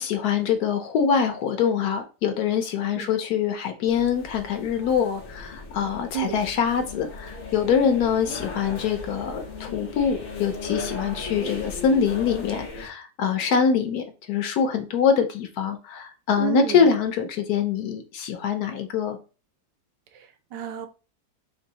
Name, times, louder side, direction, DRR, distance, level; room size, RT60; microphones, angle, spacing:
voice 1, 0.0-19.2, left 7 dB, 70° left, 1.1 m, -24 dB
sound 1, 3.9-12.9, left 3 dB, 45° left, 0.6 m, -37 dB
voice 2, 16.4-16.9 20.1-20.9, right 12 dB, 80° right, 1.2 m, -30 dB
3.3 x 2.7 x 3.9 m
omnidirectional pair, 1.9 m